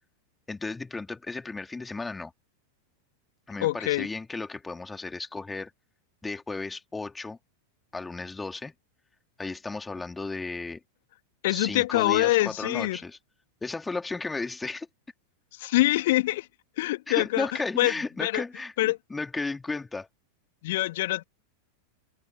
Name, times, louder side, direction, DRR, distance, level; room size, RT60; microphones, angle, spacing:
voice 1, 0.5-2.3 3.5-5.7 6.2-7.4 7.9-8.7 9.4-10.8 11.5-13.2 13.6-14.9 17.1-20.1, left 3 dB, 10° left, 3.4 m, -34 dB
voice 2, 3.6-4.1 11.4-13.0 15.5-16.5 16.8-17.5 17.8-17.9 18.2-18.4 18.8-19.0 20.6-21.2, left 18 dB, 55° left, 2.9 m, -24 dB
figure-of-eight pair, 90°, 0 cm